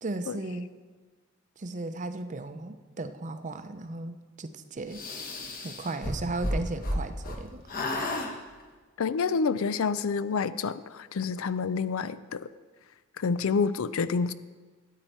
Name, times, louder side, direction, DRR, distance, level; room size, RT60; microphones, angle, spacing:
voice 1, 0.0-0.7 1.6-5.0 5.6-7.6, right 2 dB, 35° right, 10 dB, 0.6 m, -36 dB
sound 1, 4.9-7.4 7.7-8.3, left 1 dB, 45° left, 1.3 m, -32 dB
voice 2, 9.0-12.5 13.2-14.3, left 5 dB, 75° left, 15 dB, 0.4 m, -28 dB
13.5 x 9.1 x 4.5 m, 1.4 s
head